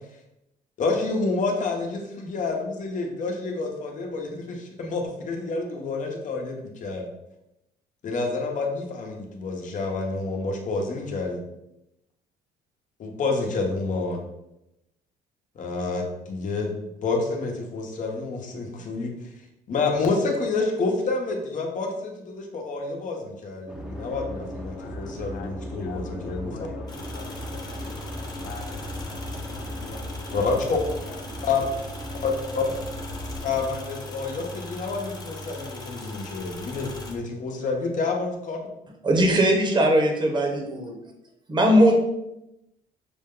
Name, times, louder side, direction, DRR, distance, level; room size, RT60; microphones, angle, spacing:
voice 1, 0.8-7.1 8.0-11.4 13.0-14.2 15.5-19.3 19.7-26.5 30.3-30.8 31.4-31.6 32.2-32.6 33.4-38.6, left 3 dB, 50° left, 1 dB, 1.0 m, -28 dB
sound 1, 23.7-33.6, left 1 dB, 5° right, 0.7 m, -37 dB
voice 2, 24.7-25.5 25.8-27.9 28.2-31.4, left 6 dB, 65° left, 6 dB, 0.7 m, -46 dB
sound 2, 26.9-37.1, left 1 dB, 25° left, 0.9 m, -39 dB
voice 3, 39.0-41.0 41.5-42.0, equal, 25° right, 2 dB, 1.0 m, -19 dB
6.2 x 2.2 x 3.7 m, 0.88 s
cardioid pair, 110°, 17 cm